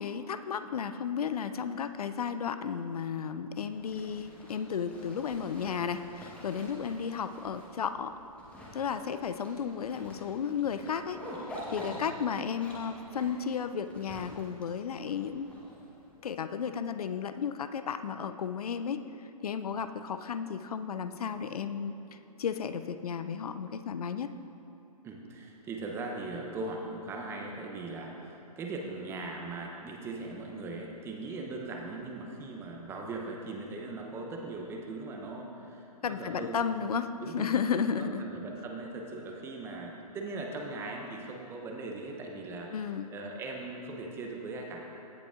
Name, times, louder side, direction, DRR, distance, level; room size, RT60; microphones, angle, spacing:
voice 1, 0.0-8.1 8.7-11.2 11.7-15.5 16.2-19.0 19.4-21.9 22.4-24.3 36.0-38.3 42.7-43.1, left 7 dB, 70° left, 10 dB, 0.4 m, -33 dB
Zipper (clothing), 3.6-16.1, equal, 5° left, 1.2 m, -47 dB
voice 2, 25.0-36.6 37.2-42.7 43.1-44.8, right 3 dB, 10° right, 1 dB, 0.7 m, -39 dB
16.0 x 6.9 x 2.5 m, 3.0 s
hypercardioid pair, 135°, 20 cm